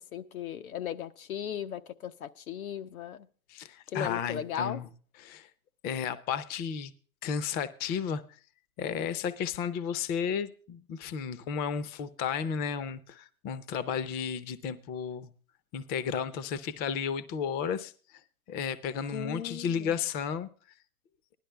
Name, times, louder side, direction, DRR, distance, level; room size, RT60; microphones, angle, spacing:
voice 1, 0.0-3.2 3.9-4.8 19.1-19.9, left 9 dB, 85° left, 1.1 m, -37 dB
voice 2, 3.5-4.9 5.2-5.5 5.8-6.9 7.2-8.2 8.8-15.3 15.7-17.9 18.5-20.5, left 7 dB, 20° left, 0.6 m, -33 dB
16.0 x 11.5 x 3.3 m
hypercardioid pair, 140°, 42 cm